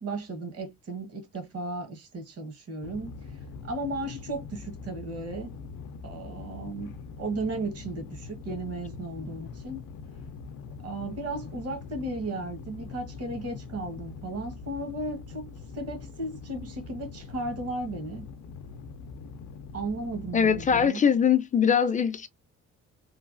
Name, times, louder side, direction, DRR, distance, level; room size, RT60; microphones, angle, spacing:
voice 1, 0.0-3.3 3.6-5.5 6.0-9.8 10.8-18.3 19.7-21.1, right 2 dB, 55° right, 1.2 m, -35 dB
sound 1, 2.8-20.9, left 5 dB, 80° left, 0.5 m, -43 dB
voice 2, 20.3-22.3, left 7 dB, 25° left, 0.5 m, -22 dB
3.1 x 2.2 x 2.5 m
cardioid pair, 90°, 30 cm